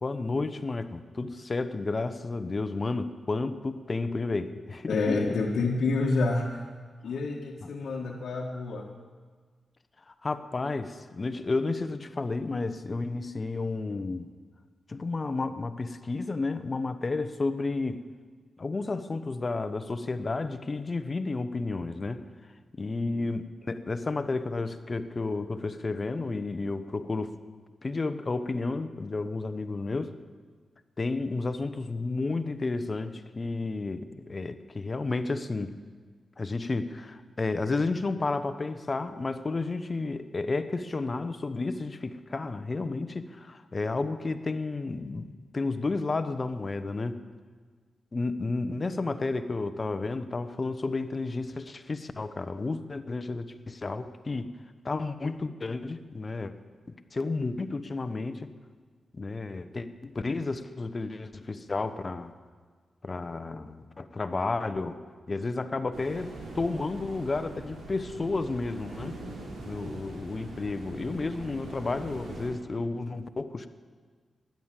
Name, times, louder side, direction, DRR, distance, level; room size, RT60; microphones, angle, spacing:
voice 1, 0.0-5.3 10.1-14.3 14.9-18.0 18.6-22.2 22.8-27.3 27.8-30.1 31.0-35.7 36.4-47.2 48.1-54.5 54.8-56.5 56.9-58.5 59.1-62.3 63.0-65.0 65.3-69.2 69.7-73.7, left 3 dB, 40° left, 11 dB, 1.0 m, -32 dB
voice 2, 4.9-6.6 7.0-8.9 23.0-23.2, left 3 dB, 80° left, -2 dB, 1.4 m, -28 dB
sound 1, 65.9-72.5, right 2 dB, 90° right, 3.3 m, -42 dB
16.5 x 10.5 x 7.5 m, 1.5 s
cardioid pair, 60°, 0 cm